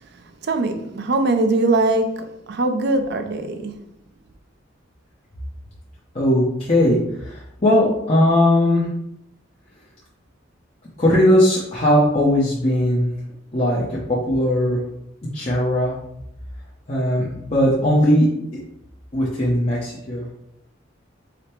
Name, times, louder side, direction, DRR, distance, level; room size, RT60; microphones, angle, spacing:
voice 1, 0.4-3.7, right 2 dB, 60° right, 0.5 m, -21 dB
voice 2, 6.1-8.9 11.0-13.1 13.5-14.8 15.3-15.9 16.9-18.3 19.1-20.2, left 1 dB, 35° left, 0.8 m, -18 dB
5.0 x 2.1 x 4.4 m
head